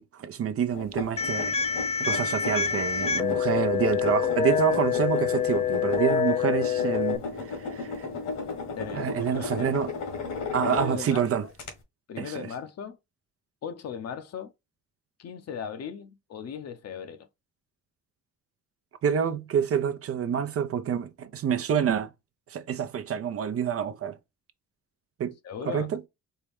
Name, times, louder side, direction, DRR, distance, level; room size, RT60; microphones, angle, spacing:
voice 1, 0.0-1.6 2.0-8.1 8.9-9.9 10.5-11.5 12.2-12.5 19.0-22.1 22.5-24.2 25.2-25.3 25.7-26.0, right 8 dB, 50° right, 0.6 m, -27 dB
sound 1, 0.7-11.2 11.6-11.7, left 4 dB, 75° left, 1.5 m, -35 dB
sound 2, 1.2-7.2, left 8 dB, 20° left, 0.4 m, -26 dB
Keyboard (musical), 4.0-6.1, right 15 dB, 25° right, 1.2 m, -42 dB
voice 2, 8.7-9.7 10.6-11.5 12.1-13.0 13.6-14.5 15.2-17.3 25.4-25.9, left 7 dB, 55° left, 0.7 m, -38 dB
4.4 x 2.2 x 3.4 m
cardioid pair, 90°, 30 cm